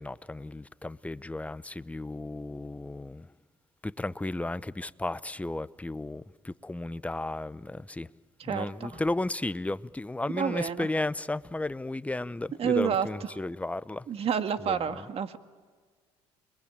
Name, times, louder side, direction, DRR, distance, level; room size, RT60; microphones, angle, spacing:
voice 1, 0.0-3.3 3.8-8.1 8.5-14.0 14.6-15.0, left 2 dB, 10° left, 0.8 m, -34 dB
voice 2, 8.4-9.0 10.4-10.9 12.6-13.3 14.1-15.4, right 7 dB, 50° right, 1.8 m, -29 dB
29.0 x 22.0 x 8.9 m
supercardioid pair, 70°, 13 cm